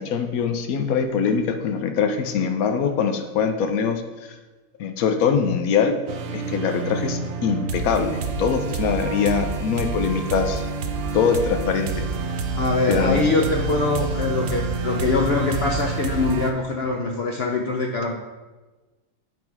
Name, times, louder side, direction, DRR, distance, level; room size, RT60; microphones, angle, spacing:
voice 1, 0.0-4.0 4.8-6.0 6.3-10.6 11.1-12.1 12.9-13.2, left 6 dB, 90° left, 7 dB, 1.1 m, -23 dB
sound 1, 6.1-16.5, right 4 dB, 55° right, 0.7 m, -28 dB
voice 2, 12.6-18.2, left 3 dB, 60° left, 1 dB, 0.7 m, -23 dB
7.9 x 3.6 x 4.6 m, 1.2 s
omnidirectional pair, 1.5 m